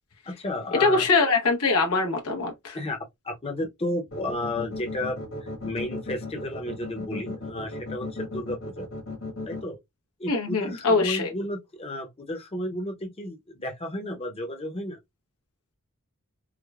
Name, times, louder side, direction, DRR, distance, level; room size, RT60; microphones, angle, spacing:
voice 1, 0.3-1.0 2.7-3.0 3.2-8.9 9.5-9.8 10.2-15.0, left 1 dB, 25° left, 0.7 m, -32 dB
voice 2, 0.8-2.8 10.3-11.3, left 3 dB, 85° left, 1.0 m, -23 dB
sound 1, 4.1-9.6, left 2 dB, 65° left, 1.4 m, -35 dB
4.7 x 2.1 x 2.3 m
head